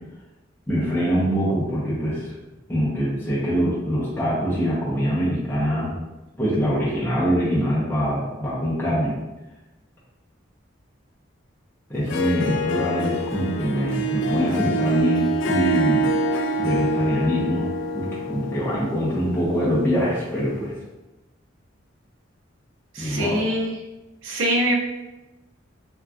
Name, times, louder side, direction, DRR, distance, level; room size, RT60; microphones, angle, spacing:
voice 1, 0.7-2.3 2.7-6.0 6.4-9.1 11.9-16.0 16.6-17.7 17.9-20.7 23.0-23.4, equal, 10° left, -9 dB, 0.6 m, -24 dB
Harp, 11.9-20.5, right 1 dB, 65° left, 0.3 m, -26 dB
voice 2, 22.9-23.8 24.2-24.7, equal, 80° right, 0 dB, 0.6 m, -23 dB
3.6 x 2.3 x 2.3 m, 1.0 s
head